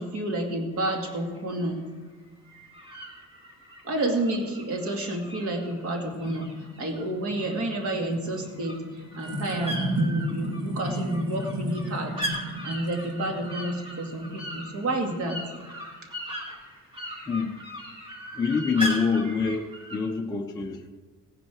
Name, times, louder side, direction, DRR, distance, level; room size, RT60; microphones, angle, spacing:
voice 1, 0.0-1.8 3.8-6.5 6.8-8.8 9.1-12.1 12.6-15.4, right 1 dB, 45° right, 2 dB, 2.4 m, -30 dB
sound 1, 0.7-1.4 2.5-7.7 8.0-20.0, equal, 15° right, 2.5 m, -39 dB
sound 2, 5.7-15.6, right 1 dB, 80° right, 3.4 m, -34 dB
voice 2, 17.2-17.6 18.3-20.9, left 5 dB, 10° left, 0 dB, 0.6 m, -26 dB
17.5 x 10.0 x 4.6 m, 1.4 s
cardioid pair, 180°, 33 cm